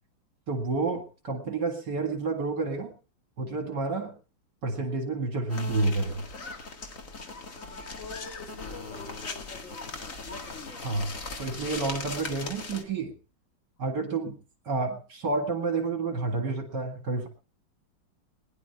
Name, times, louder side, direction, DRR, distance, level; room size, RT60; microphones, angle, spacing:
voice 1, 0.5-2.9 3.4-4.1 4.6-6.2 10.8-11.1 11.4-13.1 13.8-14.4 14.7-17.3, right 3 dB, 65° right, 3 dB, 2.5 m, -29 dB
sound 1, 5.5-12.8, left 3 dB, 45° left, 2.1 m, -39 dB
voice 2, 8.0-10.2, left 3 dB, 80° left, 4 dB, 5.1 m, -45 dB
20.0 x 11.0 x 4.6 m, 0.36 s
omnidirectional pair, 2.0 m